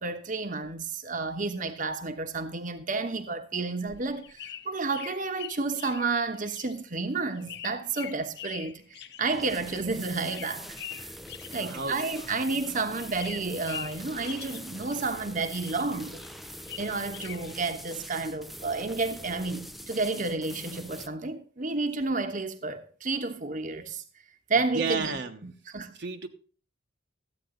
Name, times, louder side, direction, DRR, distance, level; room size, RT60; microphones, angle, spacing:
voice 1, 0.0-11.1 11.5-16.2 16.8-24.0 24.5-25.1 25.4-25.9, right 3 dB, 45° right, 1.1 m, -31 dB
sound 1, 3.7-12.7 13.0-15.2 15.5-17.5, left 10 dB, 60° left, 0.8 m, -44 dB
sound 2, 9.3-21.1, equal, ahead, 0.6 m, -43 dB
voice 2, 11.6-12.3 24.7-25.4 26.0-26.3, right 4 dB, 60° right, 1.1 m, -32 dB
14.0 x 9.1 x 3.8 m
head